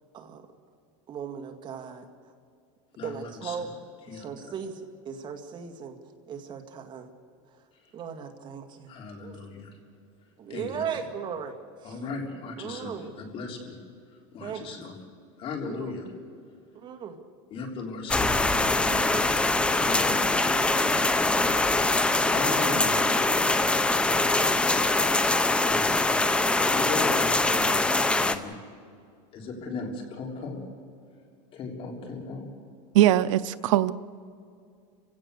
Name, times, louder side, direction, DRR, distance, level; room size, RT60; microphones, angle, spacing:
voice 1, 0.1-0.5 1.1-2.1 3.0-3.8 4.1-6.0 6.3-7.1 7.9-9.4 10.4-11.5 11.8-12.0 12.6-13.1 14.4-14.8 15.6-16.0 16.7-17.2, right 7 dB, 30° right, 2.1 m, -38 dB
voice 2, 3.0-3.6 4.1-4.5 8.9-9.8 10.5-11.0 11.8-13.8 14.3-14.9 15.4-16.1 17.5-22.0 22.3-26.1 26.6-28.6 29.3-30.6 31.5-32.5, left 4 dB, 35° left, 3.6 m, -38 dB
sound 1, 18.1-28.4, left 2 dB, 5° left, 0.7 m, -23 dB
voice 3, 32.9-33.9, right 13 dB, 85° right, 0.6 m, -20 dB
30.0 x 16.5 x 6.7 m
supercardioid pair, 150°, 16 cm